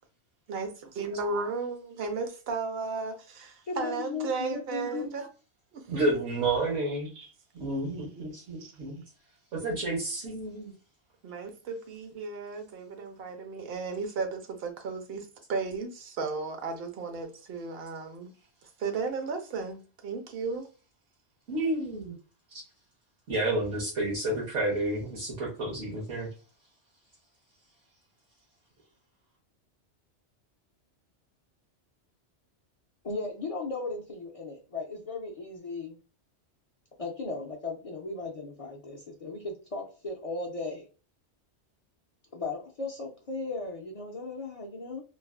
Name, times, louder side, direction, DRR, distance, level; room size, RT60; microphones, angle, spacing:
voice 1, 0.5-5.3 5.7-6.2 7.1-7.3 8.0-8.3 11.2-18.3 18.6-20.7, right 4 dB, 60° right, 0.9 m, -35 dB
voice 2, 3.7-5.1 33.0-36.0 37.0-40.9 42.3-45.0, left 3 dB, 60° left, 0.3 m, -36 dB
voice 3, 5.9-7.1 7.5-8.1 8.5-8.9 9.6-10.7 21.5-22.1 23.3-26.3, right 2 dB, 80° right, 1.3 m, -30 dB
3.2 x 2.3 x 2.3 m
omnidirectional pair, 1.2 m